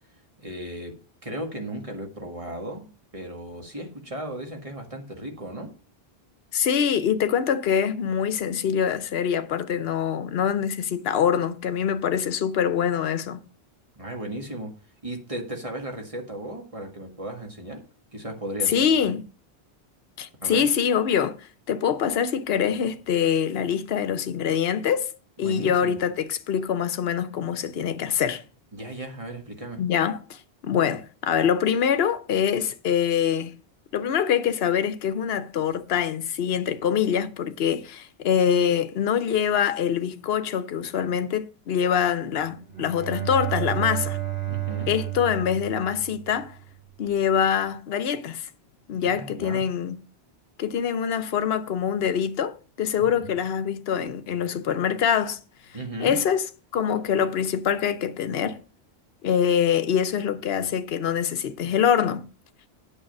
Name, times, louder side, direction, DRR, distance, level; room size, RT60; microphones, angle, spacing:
voice 1, 0.4-2.9 3.1-5.7 14.0-14.7 15.0-17.8 18.1-19.1 20.4-20.7 25.4-26.0 28.7-29.8 44.5-44.9 49.0-49.6 53.0-53.3 55.7-56.2, right 1 dB, 30° right, 1.8 m, -36 dB
voice 2, 6.5-13.4 18.7-19.2 20.2-21.4 21.7-25.1 25.4-28.4 29.8-33.5 33.9-44.2 44.9-46.5 47.0-48.5 48.9-50.0 50.6-55.4 56.0-56.5 56.7-58.6 59.2-62.2, left 8 dB, 70° left, 1.0 m, -24 dB
Bowed string instrument, 42.6-46.6, right 15 dB, 50° right, 4.2 m, -31 dB
8.8 x 6.8 x 5.3 m
omnidirectional pair, 1.1 m